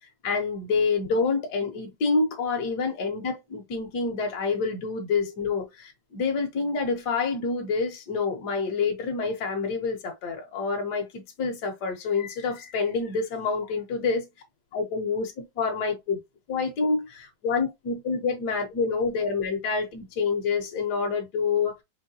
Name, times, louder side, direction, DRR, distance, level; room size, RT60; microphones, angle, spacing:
voice 1, 0.2-14.3 14.7-16.2 16.5-21.8, left 4 dB, 70° left, 1.6 m, -27 dB
5.7 x 3.2 x 2.7 m
omnidirectional pair, 1.9 m